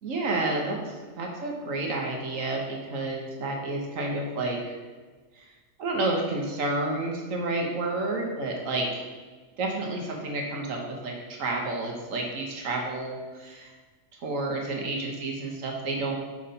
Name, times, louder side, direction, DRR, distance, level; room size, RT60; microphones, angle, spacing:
voice 1, 0.0-4.8 5.3-5.4 5.8-9.0 9.6-13.7 14.2-16.2, right 2 dB, 90° right, 0 dB, 1.5 m, -30 dB
5.9 x 5.1 x 4.2 m, 1.3 s
omnidirectional pair, 1.3 m